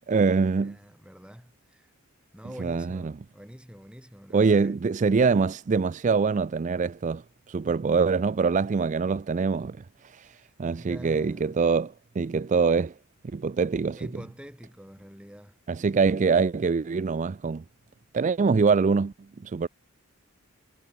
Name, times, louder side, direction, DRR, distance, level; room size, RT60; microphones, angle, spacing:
voice 1, 0.1-0.8 2.6-3.1 4.3-7.2 7.5-9.8 10.0-12.9 13.3-14.0 15.7-17.6 18.1-19.1 19.4-19.7, right 5 dB, 35° right, 0.4 m, -24 dB
voice 2, 0.6-1.9 2.3-4.8 10.2-10.5 10.8-11.6 13.9-15.6, equal, 5° right, 4.1 m, -46 dB
head